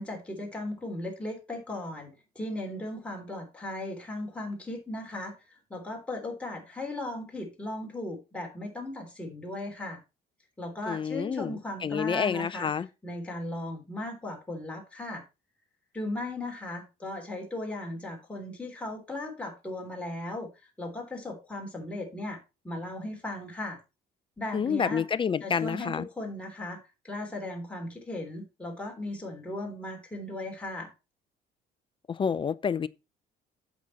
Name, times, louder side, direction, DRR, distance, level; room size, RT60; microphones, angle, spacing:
voice 1, 0.0-10.0 10.6-12.7 13.0-15.2 15.9-23.8 24.4-25.0 25.4-26.8 27.0-30.9, left 1 dB, 5° left, 3.3 m, -37 dB
voice 2, 10.9-12.9 24.5-26.1 32.1-32.9, left 6 dB, 30° left, 0.5 m, -29 dB
8.2 x 6.2 x 4.2 m
cardioid pair, 110°, 17 cm